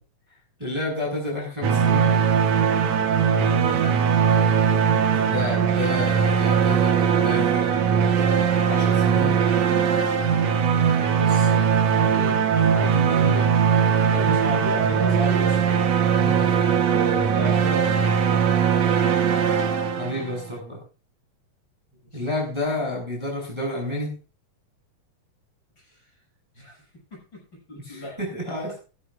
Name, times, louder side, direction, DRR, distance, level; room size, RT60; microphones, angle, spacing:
voice 1, 0.6-2.1 5.1-9.4 16.2-16.5 20.0-20.8 22.1-24.1 27.8-28.7, left 1 dB, 5° right, -2 dB, 6.8 m, -30 dB
sound 1, 1.6-20.5, right 7 dB, 60° right, 2.3 m, -20 dB
voice 2, 3.2-3.9 11.2-12.4 12.7-13.5 14.1-15.6 16.9-18.2 22.1-22.2 26.6-26.8 27.7-28.2, equal, 35° left, -3 dB, 7.5 m, -32 dB
18.5 x 14.0 x 2.5 m, 0.35 s
omnidirectional pair, 3.9 m